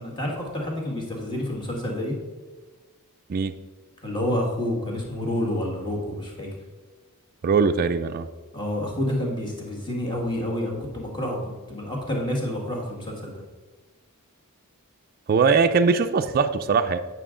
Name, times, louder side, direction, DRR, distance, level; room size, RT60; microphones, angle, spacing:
voice 1, 0.0-2.1 4.0-6.5 8.5-11.4 11.7-13.3, left 1 dB, 20° left, -1 dB, 1.7 m, -28 dB
voice 2, 7.4-8.3 15.3-17.0, right 5 dB, 40° right, 7 dB, 0.4 m, -21 dB
9.1 x 6.1 x 3.7 m, 1.3 s
head